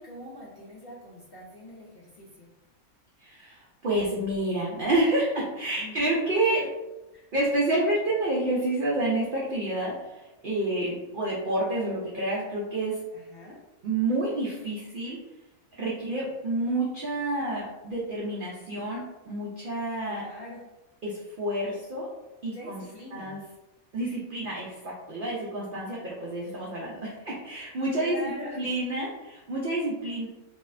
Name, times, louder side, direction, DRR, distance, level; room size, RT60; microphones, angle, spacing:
voice 1, 0.0-2.5 5.8-6.2 6.6-6.7 7.1-7.3 13.1-13.6 20.0-20.6 22.5-23.4 28.0-28.6, equal, 75° left, -6 dB, 0.5 m, -43 dB
voice 2, 3.2-6.6 7.3-13.0 13.8-15.2 15.8-20.2 21.0-22.1 22.4-22.8 23.1-23.4 23.9-30.3, right 1 dB, 80° right, -5 dB, 0.4 m, -29 dB
2.6 x 2.1 x 2.4 m, 1.0 s
omnidirectional pair, 1.5 m